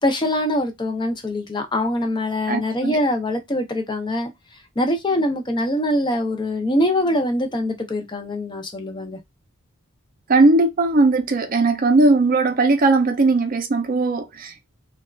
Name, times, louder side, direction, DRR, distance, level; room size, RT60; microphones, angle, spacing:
voice 1, 0.0-4.3 4.8-9.2, left 1 dB, 20° left, 0.5 m, -23 dB
voice 2, 2.5-3.0 10.3-14.6, right 3 dB, 40° right, 0.5 m, -18 dB
3.3 x 2.3 x 2.2 m
head